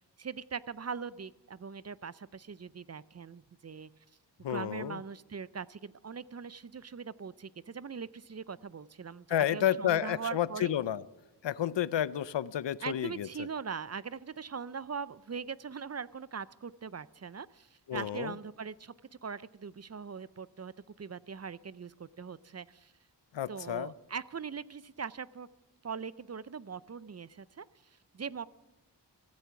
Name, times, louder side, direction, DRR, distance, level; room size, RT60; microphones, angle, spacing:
voice 1, 0.2-3.9 4.5-10.7 12.8-18.9 19.2-22.9 23.5-25.5 25.8-27.7 28.1-28.4, right 6 dB, 35° right, 18 dB, 0.4 m, -41 dB
voice 2, 4.4-5.0 9.3-11.0 11.4-13.5 17.9-18.3 23.3-23.9, left 10 dB, 75° left, 18 dB, 0.6 m, -31 dB
15.5 x 14.0 x 5.8 m, 0.98 s
wide cardioid pair, 70°, 44 cm